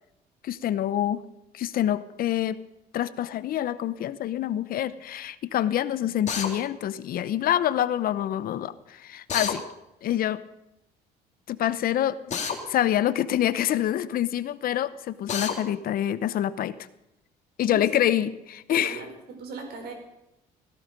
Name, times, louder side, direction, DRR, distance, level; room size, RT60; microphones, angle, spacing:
voice 1, 0.4-1.2 1.5-2.6 2.9-9.6 10.0-10.4 11.5-12.4 12.7-16.8 17.6-19.0, left 11 dB, 60° left, 15 dB, 0.9 m, -26 dB
Drill, 6.3-6.5 9.3-9.6 12.3-12.6 15.3-15.6, left 6 dB, 45° left, 2.5 m, -28 dB
voice 2, 17.6-18.2 18.8-19.9, right 3 dB, 70° right, 4 dB, 5.0 m, -38 dB
17.0 x 16.0 x 5.3 m, 0.86 s
cardioid pair, 110°, 17 cm